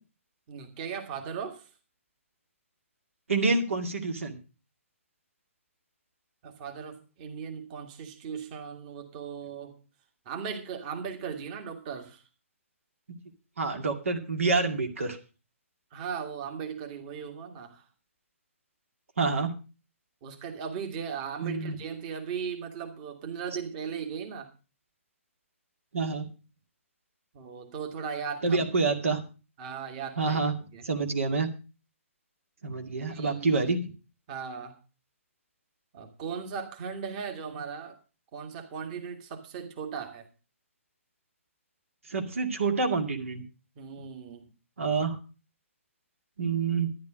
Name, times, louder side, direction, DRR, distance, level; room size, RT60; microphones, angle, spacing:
voice 1, 0.5-1.7 6.4-9.7 10.3-12.2 15.9-17.8 20.2-24.5 27.3-28.7 29.6-30.4 30.7-30.8 33.1-33.7 34.3-34.7 35.9-38.0 38.3-40.3 43.8-44.4, right 6 dB, 35° right, 4 dB, 2.0 m, -37 dB
voice 2, 3.3-4.4 13.6-15.2 19.2-19.5 21.4-21.8 25.9-26.2 28.4-29.2 30.2-30.5 30.8-31.5 32.6-33.9 42.1-43.4 44.8-45.2 46.4-46.9, right 4 dB, 65° right, 4 dB, 2.2 m, -27 dB
12.5 x 10.5 x 5.0 m, 0.33 s
figure-of-eight pair, 130°, 8 cm